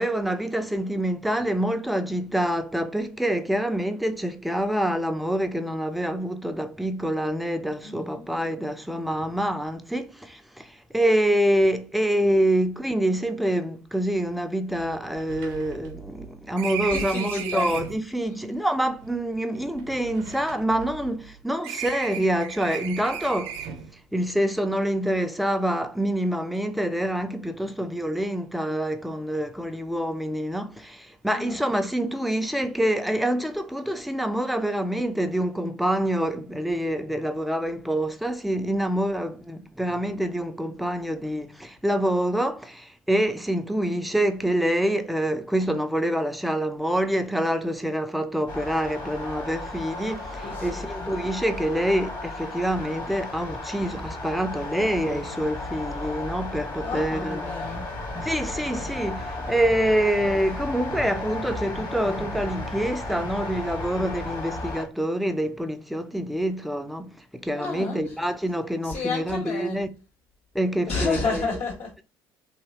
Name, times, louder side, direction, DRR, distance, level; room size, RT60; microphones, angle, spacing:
voice 1, 0.0-23.7 24.1-57.5 58.2-67.2 67.4-69.9 70.5-71.5, right 1 dB, ahead, 0.4 m, -26 dB
voice 2, 7.8-8.3 16.9-17.8 18.2-18.6 31.3-31.7 50.4-51.1 56.8-57.9 67.5-68.0 68.8-69.8 70.9-72.0, left 4 dB, 60° left, 1.6 m, -31 dB
sound 1, 13.9-14.0 14.3-14.4 14.7-18.0 18.9-21.3 21.6-24.0, right 8 dB, 65° right, 0.7 m, -36 dB
sound 2, 48.5-64.8, left 2 dB, 40° left, 1.5 m, -34 dB
3.0 x 2.8 x 2.8 m
figure-of-eight pair, 55°, 11 cm